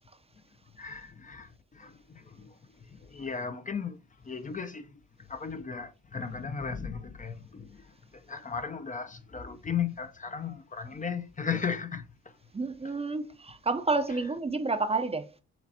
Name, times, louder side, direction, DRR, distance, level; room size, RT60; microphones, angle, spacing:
voice 1, 0.7-12.4 12.8-12.9 14.1-14.2, left 6 dB, 25° left, 0.6 m, -36 dB
voice 2, 12.5-15.3, right 3 dB, 20° right, 0.6 m, -29 dB
6.0 x 3.1 x 2.7 m
cardioid pair, 75°, 29 cm